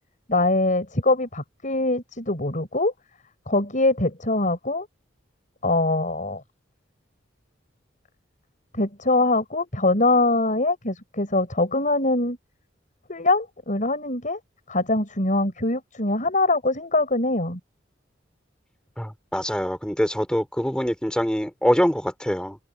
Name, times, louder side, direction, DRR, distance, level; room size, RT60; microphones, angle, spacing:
voice 1, 0.3-2.9 3.5-4.9 5.6-6.4 8.7-12.4 13.1-14.4 14.7-17.6, left 2 dB, 40° left, 7.1 m, -23 dB
voice 2, 19.0-22.6, equal, 5° left, 5.6 m, -24 dB
open air
head